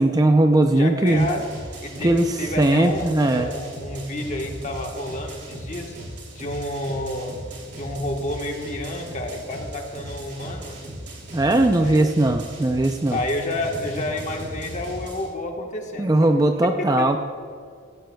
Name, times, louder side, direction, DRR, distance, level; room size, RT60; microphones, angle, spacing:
voice 1, 0.0-1.3 2.0-3.5 11.3-13.2 16.0-17.2, right 1 dB, 20° right, 6 dB, 0.4 m, -19 dB
voice 2, 0.7-1.5 1.8-5.9 6.3-7.4 7.7-10.8 11.8-12.1 13.1-16.3 16.6-17.2, left 1 dB, 35° left, 2 dB, 1.3 m, -30 dB
sound 1, 1.1-15.3, right 1 dB, 55° right, 2.9 m, -37 dB
16.5 x 16.0 x 2.3 m, 2.1 s
head